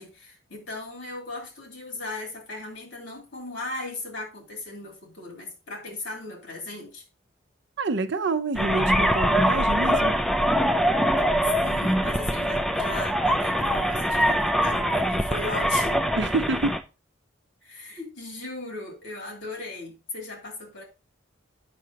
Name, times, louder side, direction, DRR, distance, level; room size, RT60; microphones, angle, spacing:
voice 1, 0.0-7.0 11.2-16.0 17.6-20.8, left 2 dB, 65° left, 2.6 m, -37 dB
voice 2, 7.8-10.2 16.2-16.8, right 3 dB, 60° right, 0.6 m, -27 dB
sound 1, 8.6-16.8, equal, ahead, 0.4 m, -23 dB
8.4 x 6.2 x 2.9 m
head